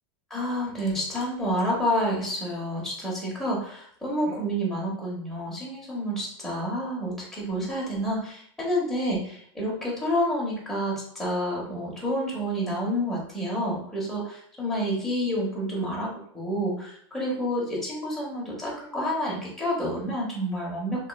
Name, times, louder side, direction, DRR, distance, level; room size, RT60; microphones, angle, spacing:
voice 1, 0.3-21.1, equal, ahead, -5 dB, 1.0 m, -29 dB
3.7 x 3.1 x 2.3 m, 0.64 s
supercardioid pair, 160°, 14 cm